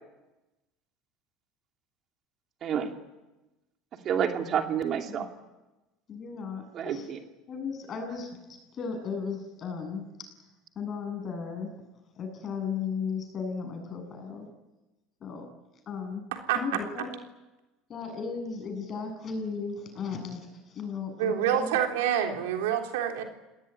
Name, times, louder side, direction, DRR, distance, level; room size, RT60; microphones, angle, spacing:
voice 1, 2.6-2.9 4.0-5.3 6.7-7.2, right 8 dB, 45° right, 4 dB, 2.6 m, -29 dB
voice 2, 6.1-7.1 7.5-8.4 8.7-10.3 10.7-11.7 12.1-14.5 15.2-15.5 15.9-16.3 16.5-17.1 17.9-21.7, left 5 dB, 40° left, 6 dB, 7.8 m, -35 dB
voice 3, 16.3-16.8 21.2-23.2, right 9 dB, 90° right, 3 dB, 3.6 m, -27 dB
27.0 x 19.0 x 9.7 m, 1.1 s
supercardioid pair, 115°, 0 cm